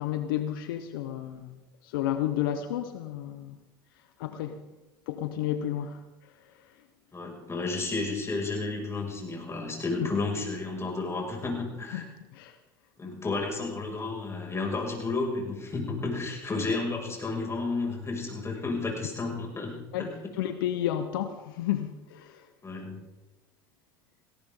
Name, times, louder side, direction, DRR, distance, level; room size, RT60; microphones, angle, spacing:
voice 1, 0.0-3.6 4.2-4.6 5.1-6.0 11.9-12.6 19.9-20.1 20.4-22.5, left 11 dB, 80° left, 9 dB, 1.0 m, -32 dB
voice 2, 7.1-12.0 13.0-20.1 22.6-23.0, left 3 dB, 25° left, 0 dB, 6.5 m, -32 dB
19.0 x 17.5 x 3.9 m, 1.0 s
hypercardioid pair, 85°, 12 cm